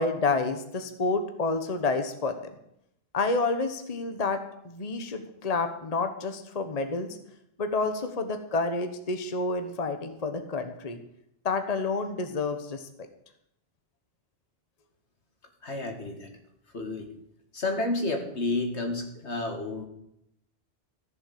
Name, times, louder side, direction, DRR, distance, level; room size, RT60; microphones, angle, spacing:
voice 1, 0.0-2.4 3.1-7.2 7.6-11.0 11.4-12.9, left 3 dB, 35° left, 7 dB, 1.2 m, -29 dB
voice 2, 15.6-16.3 16.7-17.1 17.5-19.9, left 2 dB, 80° left, 4 dB, 2.4 m, -30 dB
14.5 x 7.0 x 8.5 m, 0.78 s
omnidirectional pair, 1.1 m